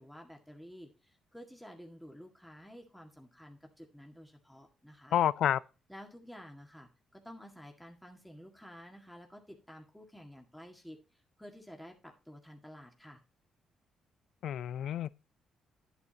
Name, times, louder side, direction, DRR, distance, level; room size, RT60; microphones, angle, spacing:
voice 1, 0.0-5.2 5.9-13.2, equal, 5° left, 1.9 m, -51 dB
voice 2, 5.1-5.6 14.4-15.1, left 10 dB, 70° left, 0.5 m, -29 dB
11.0 x 8.2 x 2.9 m
cardioid pair, 90°, 0 cm